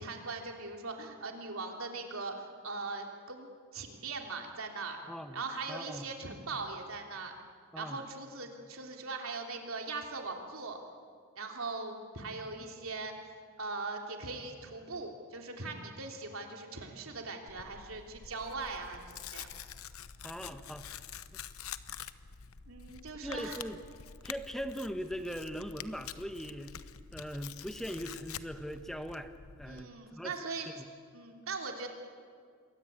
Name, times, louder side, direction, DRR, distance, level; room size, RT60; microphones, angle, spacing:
voice 1, 0.0-5.0 5.3-7.3 7.7-10.8 11.4-13.1 13.6-19.5 22.7-23.6 29.7-30.7 31.1-31.9, right 3 dB, 65° right, 2 dB, 3.3 m, -40 dB
voice 2, 5.1-5.4 5.7-6.1 7.7-8.0 20.2-21.0 23.2-23.8 24.2-26.8 27.1-29.3 29.6-30.3 30.8-30.9, equal, ahead, 8 dB, 1.1 m, -40 dB
Tearing, 17.5-29.8, left 8 dB, 75° left, 0.9 m, -47 dB
27.5 x 22.0 x 8.9 m, 2.1 s
head